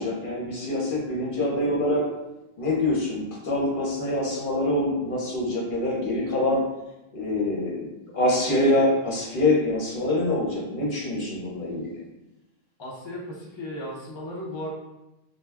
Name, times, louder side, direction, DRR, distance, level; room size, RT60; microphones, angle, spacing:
voice 1, 0.0-2.0 2.6-6.6 7.1-7.9 8.1-11.9, left 1 dB, 55° left, -4 dB, 0.9 m, -25 dB
voice 2, 12.8-14.7, left 1 dB, 35° left, -5 dB, 0.4 m, -35 dB
2.2 x 2.2 x 3.3 m, 0.95 s
omnidirectional pair, 1.1 m